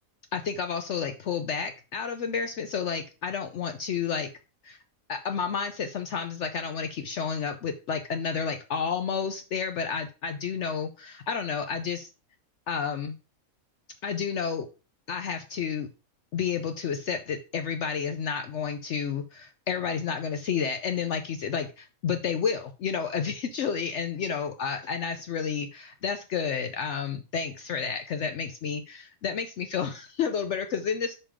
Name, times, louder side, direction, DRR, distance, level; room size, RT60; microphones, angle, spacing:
voice 1, 0.3-4.3 4.6-4.8 5.1-12.1 12.7-13.2 14.0-14.7 15.1-15.9 16.3-31.1, left 6 dB, 65° left, 7 dB, 0.8 m, -31 dB
5.5 x 4.9 x 4.9 m, 0.32 s
omnidirectional pair, 1.5 m